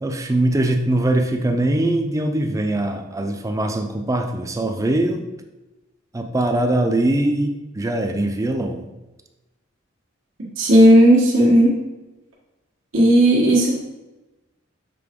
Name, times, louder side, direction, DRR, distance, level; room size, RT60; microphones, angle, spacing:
voice 1, 0.0-5.3 6.1-8.9, right 1 dB, 15° right, 5 dB, 0.5 m, -22 dB
voice 2, 10.6-11.8 12.9-13.8, right 1 dB, 75° right, -5 dB, 1.4 m, -13 dB
6.8 x 3.7 x 3.7 m, 1.1 s
head